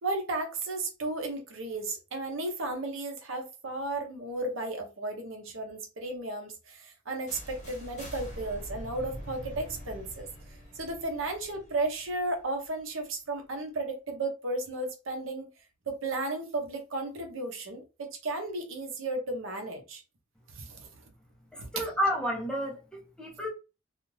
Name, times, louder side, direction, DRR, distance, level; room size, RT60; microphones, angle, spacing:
voice 1, 0.0-10.3 10.8-15.5 15.9-20.0 20.6-20.9 21.6-21.7, right 2 dB, 80° right, 0.8 m, -34 dB
sound 1, 7.3-13.1, equal, 35° left, 1.0 m, -44 dB
voice 2, 21.5-23.5, equal, 5° left, 0.7 m, -31 dB
2.4 x 2.4 x 3.1 m
head